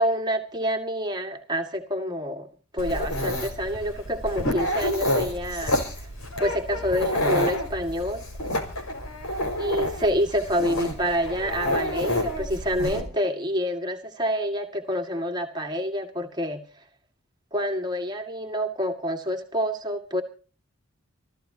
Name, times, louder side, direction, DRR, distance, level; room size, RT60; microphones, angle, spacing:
voice 1, 0.0-2.5 2.7-5.8 6.4-8.2 9.6-16.6 17.5-20.2, equal, 20° right, 3 dB, 2.1 m, -27 dB
Dog, 2.8-13.0, left 1 dB, 90° left, 5.4 m, -28 dB
27.0 x 14.5 x 2.9 m, 0.37 s
head